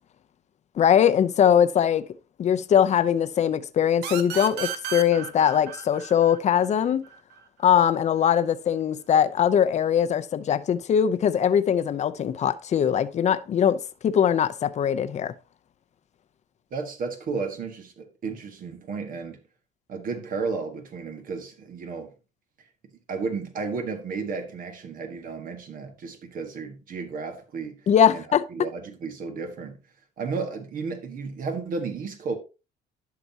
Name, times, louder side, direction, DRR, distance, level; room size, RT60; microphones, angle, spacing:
voice 1, 0.8-2.1 2.4-7.1 7.6-15.3 27.9-28.4, left 9 dB, 45° left, 0.7 m, -21 dB
sound 1, 4.0-7.4, right 9 dB, 90° right, 1.1 m, -34 dB
voice 2, 16.7-19.4 19.9-22.1 23.1-27.8 28.1-28.2 28.5-29.8 30.2-32.4, right 4 dB, 55° right, 1.6 m, -33 dB
11.0 x 5.9 x 2.8 m
cardioid pair, 110°, 17 cm